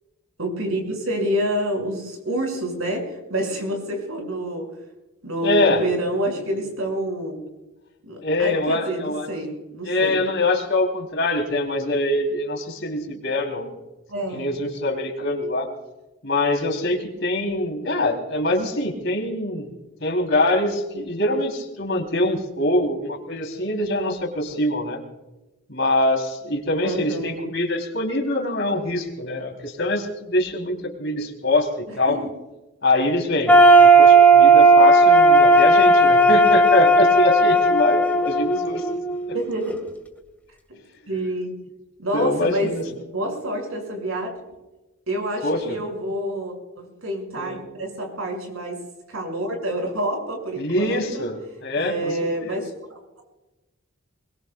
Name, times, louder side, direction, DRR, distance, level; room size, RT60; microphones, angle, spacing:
voice 1, 0.4-4.7 5.2-7.4 8.0-10.2 14.1-14.6 26.8-27.5 31.9-32.3 39.3-39.9 40.7-40.8 41.1-41.6 42.0-44.3 45.1-48.8 49.1-51.3 51.8-52.7, right 1 dB, 85° right, 2 dB, 6.3 m, -28 dB
voice 2, 5.4-5.8 8.2-9.3 9.8-13.7 14.3-15.7 16.2-19.7 20.0-25.0 25.7-32.2 32.8-38.9 39.3-39.4 42.1-42.8 45.4-45.8 47.4-47.6 50.6-52.6, left 2 dB, 55° left, 2 dB, 3.4 m, -24 dB
sound 1, 33.5-39.4, right 2 dB, 10° left, 1.8 m, -14 dB
23.0 x 22.0 x 2.4 m, 1.0 s
head